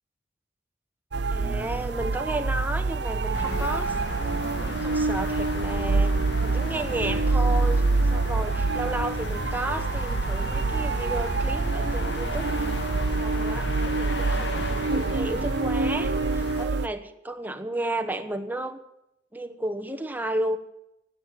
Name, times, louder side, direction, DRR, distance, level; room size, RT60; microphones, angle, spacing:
sound 1, 1.1-16.9, right 3 dB, 70° right, 0.6 m, -26 dB
voice 1, 1.3-3.9 4.6-6.1 6.4-7.8 8.1-12.5 13.0-18.8 19.3-20.6, right 1 dB, 10° right, 7 dB, 1.1 m, -33 dB
sound 2, 3.3-16.7, left 2 dB, 75° left, 1.8 m, -35 dB
16.0 x 8.9 x 9.0 m, 0.86 s
head